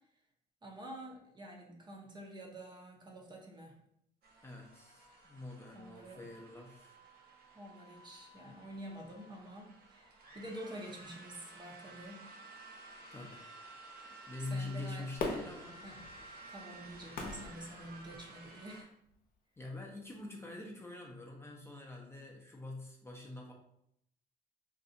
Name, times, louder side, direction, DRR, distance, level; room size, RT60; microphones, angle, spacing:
voice 1, 0.6-3.8 5.7-6.2 7.5-12.3 14.4-15.1 15.8-16.0 16.5-18.9, right 1 dB, 25° right, 0 dB, 0.6 m, -48 dB
sound 1, 4.2-18.8, right 2 dB, 65° right, 0.8 m, -54 dB
voice 2, 4.4-7.0 13.1-13.5 14.0-15.8 19.6-23.5, left 2 dB, 15° left, -1 dB, 0.5 m, -45 dB
Fireworks, 15.2-18.5 19.1-19.2, left 3 dB, 55° left, 0.7 m, -42 dB
2.6 x 2.3 x 3.8 m, 0.73 s
cardioid pair, 110°, 17 cm